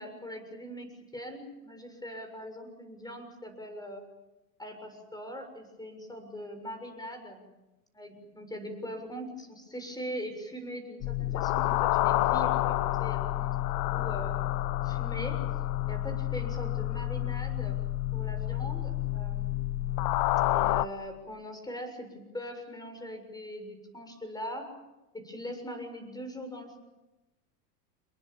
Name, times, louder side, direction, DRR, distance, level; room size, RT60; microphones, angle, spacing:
voice 1, 0.0-4.0 4.6-7.5 7.9-13.5 13.9-14.4 14.8-15.4 15.9-17.8 18.1-19.7 20.5-24.7 25.1-26.8, equal, 10° left, 7 dB, 6.9 m, -41 dB
sound 1, 11.0-20.9, left 15 dB, 45° left, 1.1 m, -29 dB
27.5 x 23.0 x 7.3 m, 1.0 s
hypercardioid pair, 110°, 47 cm